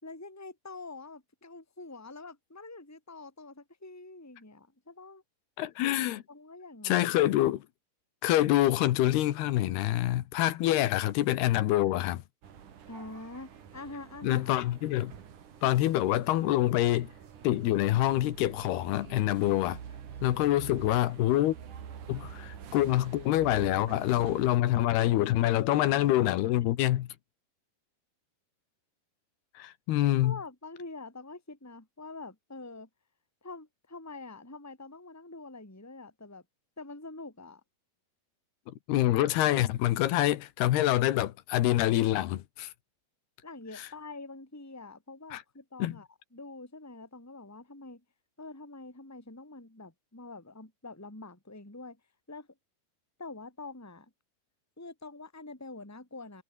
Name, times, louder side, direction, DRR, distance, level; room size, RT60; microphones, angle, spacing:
voice 1, 0.0-5.2 6.0-7.1 12.9-14.8 30.2-32.9 33.4-36.4 36.8-37.6 43.4-48.0 48.4-52.0 52.3-52.5 53.2-54.1 54.8-56.4, left 3 dB, 5° left, 3.6 m, -45 dB
voice 2, 5.6-6.2 6.8-7.7 8.2-12.2 14.2-15.1 15.6-17.1 17.4-19.8 20.2-21.6 22.1-27.1 29.6-30.4 38.7-42.7 45.3-45.4 45.8-46.0, left 14 dB, 75° left, 3.2 m, -26 dB
sound 1, 12.4-24.5, right 8 dB, 55° right, 3.7 m, -47 dB
omnidirectional pair, 4.7 m